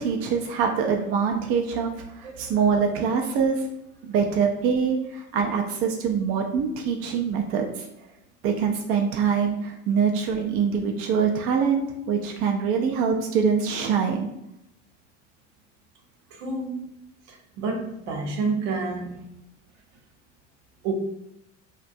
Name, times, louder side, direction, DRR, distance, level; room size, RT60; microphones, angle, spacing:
voice 1, 0.0-3.7 4.0-7.9 8.4-14.3, right 6 dB, 40° right, 2 dB, 0.4 m, -24 dB
voice 2, 2.2-2.6 16.3-16.9 17.3-19.3 20.8-20.9, right 4 dB, 60° right, 2 dB, 0.7 m, -29 dB
2.4 x 2.1 x 2.6 m, 0.82 s
hypercardioid pair, 70°, 38 cm